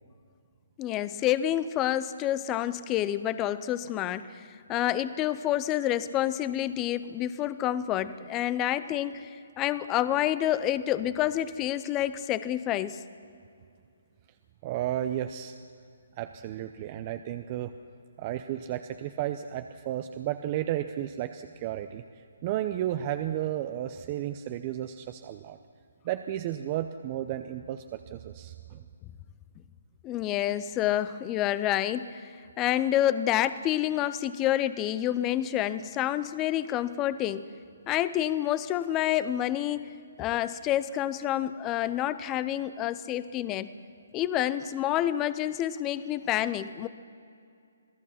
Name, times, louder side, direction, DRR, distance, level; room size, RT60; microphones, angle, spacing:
voice 1, 0.8-4.4 4.7-9.3 9.6-13.0 30.0-32.3 32.6-37.5 37.9-39.9 40.2-43.7 44.1-46.9, left 12 dB, 20° left, 14 dB, 0.6 m, -28 dB
voice 2, 14.6-15.6 16.2-17.7 18.2-25.6 26.0-28.8, right 12 dB, 30° right, 8 dB, 0.7 m, -33 dB
27.0 x 17.0 x 5.9 m, 2.4 s
hypercardioid pair, 155°, 0 cm